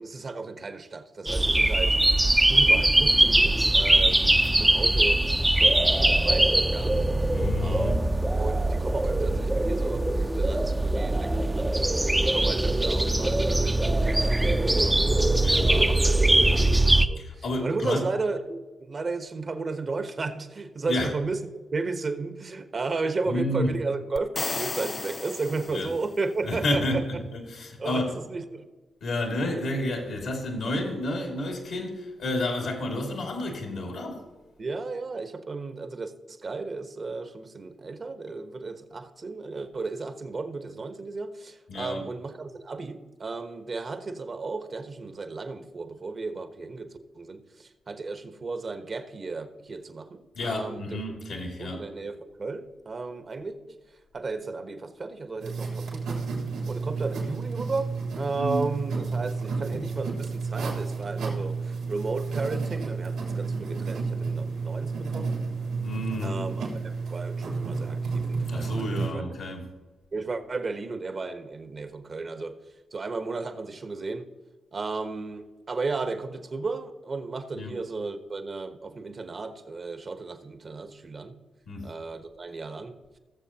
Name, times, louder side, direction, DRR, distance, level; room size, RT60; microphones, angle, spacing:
voice 1, 0.0-2.0 2.5-7.1 7.6-7.9 8.4-15.0 15.7-16.2 16.5-27.0 27.8-28.7 29.5-29.6 34.6-51.0 51.6-53.8 54.1-56.3 56.7-65.3 66.2-66.8 67.1-69.4 70.1-72.6 72.9-74.3 74.7-81.4 81.8-83.2, right 3 dB, 45° right, 1.1 m, -34 dB
sound 1, 1.3-17.1, right 1 dB, 15° right, 0.6 m, -22 dB
voice 2, 7.3-8.1 15.4-16.7 17.2-18.1 20.9-21.2 23.3-23.7 25.7-25.9 26.4-28.1 29.0-34.2 41.7-42.0 50.3-51.9 58.4-58.7 65.8-66.5 68.5-69.7 77.5-77.8 81.7-81.9, left 1 dB, 75° left, 2.3 m, -31 dB
sound 2, 24.2-26.2, left 3 dB, 40° left, 0.3 m, -34 dB
sound 3, 55.4-69.1, right 4 dB, 85° right, 3.2 m, -31 dB
18.0 x 7.1 x 2.9 m
supercardioid pair, 45°, 0 cm